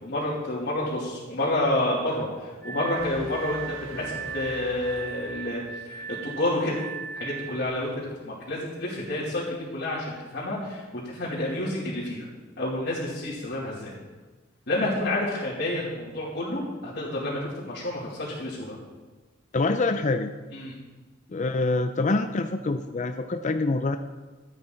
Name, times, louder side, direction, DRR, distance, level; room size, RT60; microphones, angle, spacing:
voice 1, 0.0-6.7 7.1-12.3 12.6-13.9 14.7-17.4 17.7-18.7 20.5-20.7, left 1 dB, 60° left, -9 dB, 2.9 m, -29 dB
Glass, 2.6-7.7, right 7 dB, 10° left, 3.5 m, -38 dB
sound 1, 3.0-6.2, right 2 dB, 90° right, 1.4 m, -44 dB
voice 2, 19.5-20.3 21.3-24.0, left 3 dB, 40° left, 8 dB, 0.5 m, -25 dB
15.0 x 9.3 x 3.9 m, 1.3 s
head